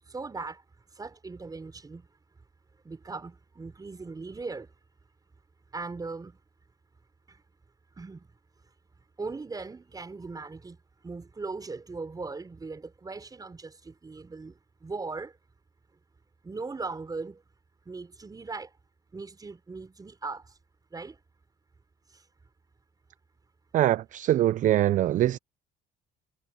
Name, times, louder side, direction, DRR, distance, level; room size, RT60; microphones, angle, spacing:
voice 1, 0.1-0.6 0.9-2.1 2.8-4.7 5.7-6.4 7.3-7.4 7.9-8.3 9.2-15.4 16.4-17.4 17.9-18.7 19.1-20.6 20.9-21.2 22.1-22.3, right 3 dB, 20° right, 5.2 m, -39 dB
voice 2, 23.7-25.4, right 13 dB, 50° right, 0.4 m, -23 dB
cardioid pair, 110°, 17 cm